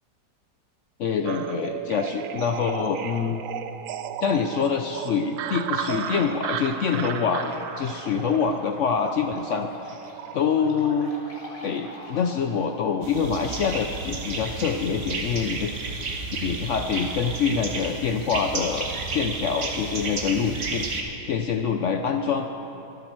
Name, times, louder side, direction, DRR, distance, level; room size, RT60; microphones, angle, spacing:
voice 1, 1.0-3.4 4.2-10.0 10.3-11.1 11.6-15.7 16.4-20.9 21.3-22.5, left 6 dB, 75° left, 6 dB, 0.7 m, -25 dB
sound 1, 1.2-10.4, right 9 dB, 75° right, 0.7 m, -34 dB
sound 2, 5.7-12.9, left 1 dB, 30° left, 2.2 m, -43 dB
sound 3, 13.0-21.0, right 3 dB, 45° right, 1.4 m, -32 dB
25.0 x 8.5 x 4.6 m, 2.8 s
omnidirectional pair, 1.9 m